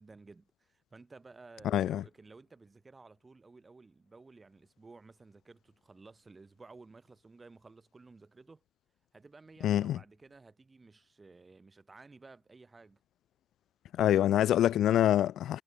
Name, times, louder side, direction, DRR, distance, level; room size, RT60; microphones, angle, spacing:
voice 1, 0.0-8.6 9.1-13.0, right 3 dB, 20° right, 4.3 m, -55 dB
voice 2, 1.6-2.0 9.6-10.0 14.0-15.6, left 11 dB, 80° left, 0.4 m, -25 dB
wide cardioid pair, 170°, 0 cm